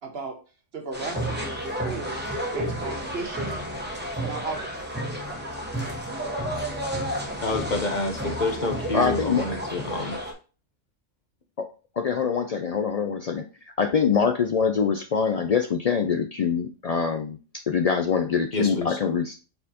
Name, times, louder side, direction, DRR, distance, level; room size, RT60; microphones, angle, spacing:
voice 1, 0.0-0.4 0.7-3.6 4.2-5.0, right 3 dB, 55° right, 5 dB, 1.3 m, -35 dB
sound 1, 0.9-10.3, equal, 10° right, 1.3 m, -31 dB
voice 2, 7.4-10.2 18.5-19.0, left 2 dB, 40° left, 3 dB, 0.9 m, -28 dB
voice 3, 8.9-9.6 11.6-11.7 12.0-19.3, left 6 dB, 85° left, 7 dB, 0.3 m, -24 dB
7.9 x 4.2 x 2.9 m, 0.35 s
omnidirectional pair, 1.3 m